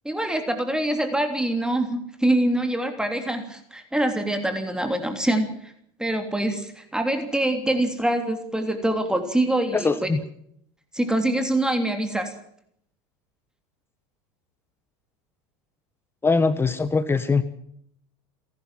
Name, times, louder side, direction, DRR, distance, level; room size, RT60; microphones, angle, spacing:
voice 1, 0.0-5.7 6.0-10.1 10.9-12.3, right 1 dB, 5° right, 6 dB, 3.2 m, -25 dB
voice 2, 9.7-10.2 16.2-17.4, left 4 dB, 15° left, 13 dB, 1.2 m, -22 dB
29.5 x 12.0 x 7.6 m, 0.68 s
supercardioid pair, 105°, 14 cm